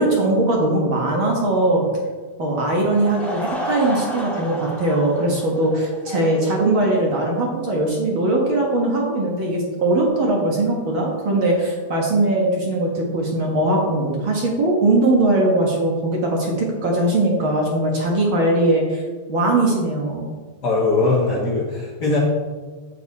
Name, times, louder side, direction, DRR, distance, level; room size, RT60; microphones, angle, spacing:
voice 1, 0.0-1.9 2.4-19.0 19.3-20.2, right 2 dB, 55° right, -2 dB, 1.4 m, -20 dB
Laughter / Crowd, 2.8-7.3, equal, ahead, 0.6 m, -32 dB
voice 2, 20.6-22.2, left 3 dB, 80° left, -5 dB, 0.9 m, -20 dB
9.2 x 8.3 x 4.2 m, 1.4 s
omnidirectional pair, 4.5 m